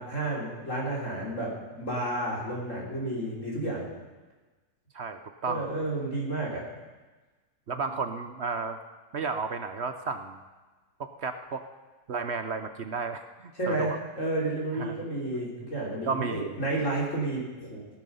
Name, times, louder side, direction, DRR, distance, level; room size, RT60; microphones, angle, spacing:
voice 1, 0.0-3.9 5.5-6.7 13.6-17.8, right 2 dB, 50° left, -4 dB, 3.8 m, -31 dB
voice 2, 4.9-5.7 7.7-8.8 9.1-10.4 11.0-11.6 12.1-13.2 13.7-14.0 14.8-15.0 16.0-16.6, right 4 dB, 55° right, 8 dB, 0.9 m, -32 dB
16.5 x 12.0 x 5.5 m, 1.2 s
omnidirectional pair, 1.7 m